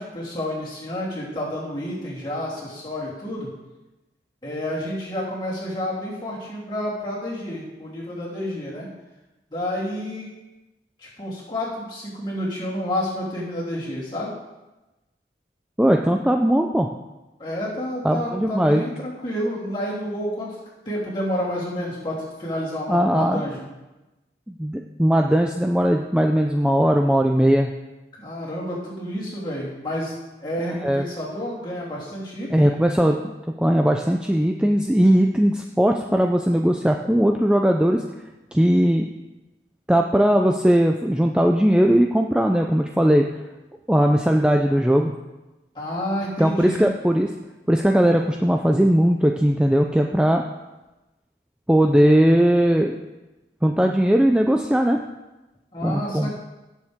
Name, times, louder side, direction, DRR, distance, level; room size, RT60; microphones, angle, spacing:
voice 1, 0.0-3.5 4.4-8.9 9.5-10.3 11.0-14.3 17.4-20.5 20.8-23.7 28.2-30.1 30.4-32.7 45.7-46.9 55.7-56.3, left 1 dB, 25° left, -7 dB, 3.3 m, -29 dB
voice 2, 15.8-16.9 18.0-18.8 22.9-23.5 24.5-27.7 30.8-31.0 32.5-38.0 38.5-39.1 39.9-43.3 43.9-45.1 46.4-47.3 47.7-50.4 51.7-52.9 53.6-55.0 55.8-56.3, equal, 5° right, 2 dB, 0.4 m, -19 dB
17.0 x 7.3 x 3.6 m, 1.1 s
head